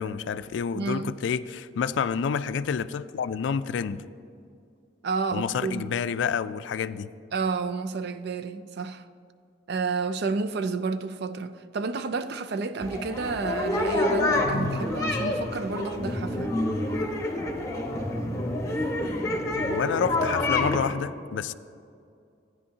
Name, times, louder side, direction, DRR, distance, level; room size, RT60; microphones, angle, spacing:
voice 1, 0.0-4.0 5.3-7.1 14.4-14.9 19.6-21.5, left 6 dB, 70° left, 0.3 m, -29 dB
voice 2, 0.7-1.1 5.0-5.9 7.3-9.1 9.7-16.6, right 4 dB, 60° right, 0.4 m, -30 dB
sound 1, 12.8-20.8, left 2 dB, 15° left, 1.1 m, -27 dB
15.0 x 9.6 x 2.8 m
head